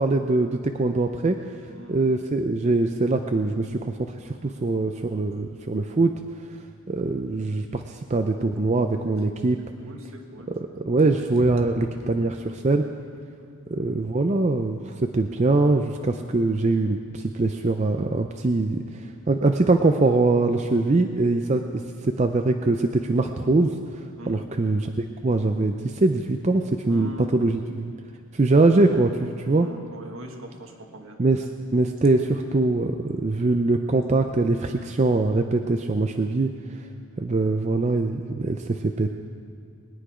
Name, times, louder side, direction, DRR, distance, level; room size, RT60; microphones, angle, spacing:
voice 1, 0.0-1.6 1.9-6.1 6.9-9.6 10.6-12.9 13.7-21.6 22.0-27.9 28.3-29.7 31.2-36.5 37.2-39.1, right 2 dB, 30° right, 5 dB, 0.4 m, -23 dB
voice 2, 1.7-2.1 9.8-10.5 11.4-11.5 13.4-13.6 24.2-24.5 26.9-27.4 29.5-31.2, left 1 dB, 70° right, 2 dB, 1.6 m, -41 dB
20.5 x 9.9 x 4.9 m, 2.4 s
head